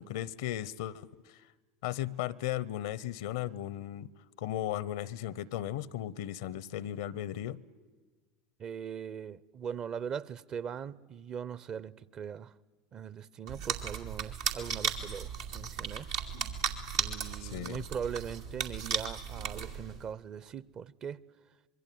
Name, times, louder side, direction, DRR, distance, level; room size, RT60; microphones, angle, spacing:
voice 1, 0.0-1.5 1.8-4.1 4.4-7.6 17.4-17.8, left 12 dB, 75° left, 0.8 m, -36 dB
voice 2, 8.6-12.5 12.9-16.1 16.9-21.2, right 7 dB, 40° right, 0.8 m, -40 dB
sound 1, 13.5-20.1, right 6 dB, 85° right, 2.5 m, -36 dB
25.5 x 22.5 x 9.3 m
hypercardioid pair, 85°, 2 cm